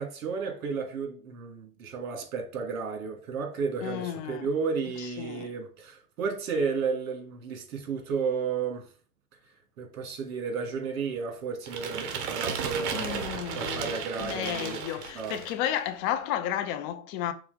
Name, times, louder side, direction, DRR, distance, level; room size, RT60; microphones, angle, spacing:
voice 1, 0.0-8.8 9.8-14.8 15.1-15.4, right 5 dB, 65° right, 2.3 m, -33 dB
voice 2, 3.8-4.5 5.0-5.5 12.9-17.3, left 11 dB, 30° left, 0.5 m, -33 dB
sound 1, 11.7-15.7, right 6 dB, 50° right, 1.4 m, -34 dB
4.9 x 4.1 x 5.0 m
hypercardioid pair, 130°, 44 cm